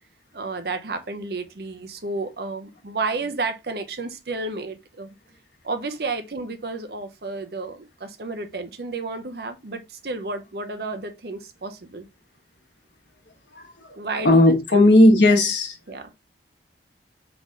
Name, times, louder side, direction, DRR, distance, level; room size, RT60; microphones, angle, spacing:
voice 1, 0.3-5.1 5.6-12.0 14.0-14.9 15.9-16.1, right 3 dB, 60° right, 0.7 m, -31 dB
voice 2, 13.5-14.0 14.2-15.8, left 1 dB, 75° left, 1.4 m, -16 dB
4.0 x 3.4 x 3.6 m
head